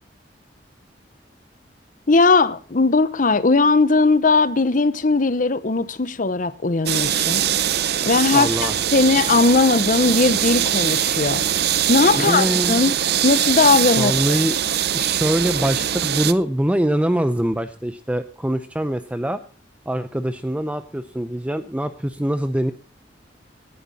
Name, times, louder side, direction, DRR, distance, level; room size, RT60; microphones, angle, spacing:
voice 1, 2.1-7.4 7.8-11.4 11.9-12.9 13.2-14.4, left 3 dB, 50° left, 0.8 m, -18 dB
sound 1, 6.9-16.3, right 10 dB, 65° right, 0.7 m, -22 dB
voice 2, 8.3-8.7 12.2-12.8 14.0-14.6 14.9-19.4 19.9-22.7, equal, 10° right, 0.5 m, -23 dB
16.5 x 11.5 x 4.1 m
head